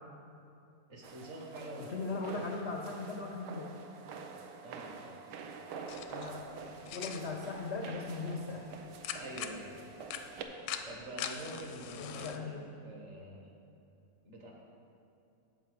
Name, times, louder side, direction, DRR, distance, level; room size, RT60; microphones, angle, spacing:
voice 1, 0.9-2.0 2.3-2.6 4.6-5.3 9.1-9.9 10.8-13.5 14.2-14.5, right 1 dB, 45° right, -1 dB, 1.5 m, -46 dB
sound 1, 1.0-10.4, right 5 dB, 80° right, 1.2 m, -47 dB
sound 2, 1.2-10.7, right 4 dB, 60° right, 1.1 m, -58 dB
voice 2, 1.9-3.7 6.1-8.7 11.9-12.7, left 3 dB, 65° left, 2 dB, 0.6 m, -39 dB
sound 3, 5.9-12.4, left 8 dB, 85° left, 1.2 m, -44 dB
8.0 x 7.0 x 5.0 m, 2.8 s
omnidirectional pair, 1.8 m